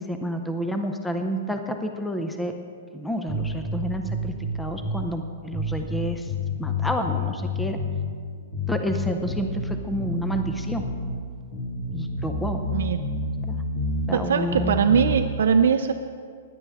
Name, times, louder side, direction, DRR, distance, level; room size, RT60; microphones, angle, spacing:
voice 1, 0.0-2.5 2.9-6.3 6.6-7.8 8.7-10.8 11.9-12.6 13.4-13.6 14.1-14.8, equal, 5° left, 5 dB, 0.5 m, -29 dB
sound 1, 3.3-5.1 5.5-8.1 8.5-11.1 11.5-14.1 14.5-15.2, left 2 dB, 45° left, 3.0 m, -29 dB
voice 2, 12.7-13.0 14.1-15.9, right 6 dB, 80° right, 6 dB, 0.5 m, -21 dB
17.0 x 10.5 x 3.5 m, 2.1 s
hypercardioid pair, 170°, 0 cm